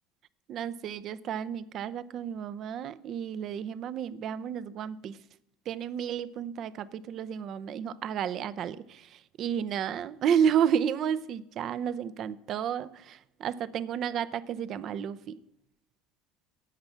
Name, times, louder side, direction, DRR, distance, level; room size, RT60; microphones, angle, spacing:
voice 1, 0.5-5.2 5.7-15.4, right 8 dB, 50° right, 0.6 m, -31 dB
12.5 x 8.8 x 5.9 m
hypercardioid pair, 80°, 0 cm